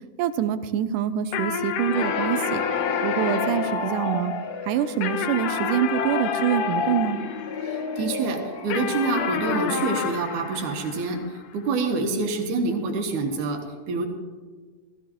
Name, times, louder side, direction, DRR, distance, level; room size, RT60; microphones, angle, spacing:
voice 1, 0.2-2.6 3.0-4.3 4.7-7.2, right 10 dB, 90° right, 11 dB, 2.2 m, -25 dB
sound 1, 1.3-8.0 8.7-11.5, left 7 dB, 80° left, 2.2 m, -31 dB
sound 2, 1.9-10.7, left 5 dB, 65° left, 2.1 m, -30 dB
voice 2, 7.7-11.2 11.5-13.6 13.9-14.1, right 3 dB, 75° right, 4 dB, 2.6 m, -26 dB
15.0 x 15.0 x 3.0 m, 1.5 s
omnidirectional pair, 3.7 m